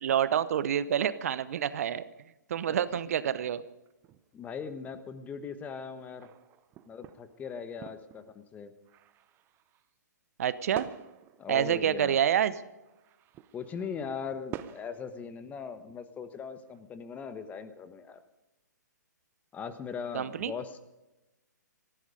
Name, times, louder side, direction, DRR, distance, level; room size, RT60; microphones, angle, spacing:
voice 1, 0.0-2.0 2.5-3.6 10.4-10.9 11.5-12.5 20.1-20.5, right 9 dB, 50° right, 16 dB, 0.9 m, -27 dB
sound 1, 2.8-3.5 3.9-4.3 6.2-8.6 8.9-9.9 10.7-12.5 12.8-14.2 14.5-15.3 15.9-16.0 16.4-16.8, right 12 dB, 20° right, 0.7 m, -48 dB
voice 2, 4.3-6.3 6.9-8.7 11.4-12.2 13.5-18.2 19.5-20.8, left 6 dB, 15° left, 10 dB, 1.3 m, -39 dB
18.5 x 15.0 x 5.1 m, 1.0 s
figure-of-eight pair, 125°, 10 cm